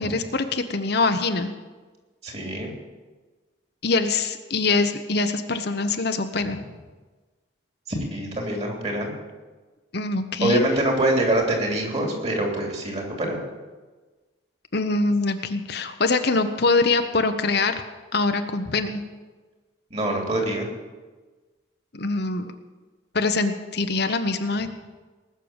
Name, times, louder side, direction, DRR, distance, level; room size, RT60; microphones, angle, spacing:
voice 1, 0.0-1.5 3.8-6.6 9.9-10.6 14.7-17.8 18.1-19.0 21.9-22.5 23.1-24.7, left 3 dB, 55° left, 7 dB, 0.9 m, -24 dB
voice 2, 2.2-2.7 7.9-9.1 10.4-13.4 19.9-20.7, right 1 dB, 30° right, 1 dB, 3.1 m, -24 dB
19.5 x 6.8 x 8.9 m, 1.3 s
head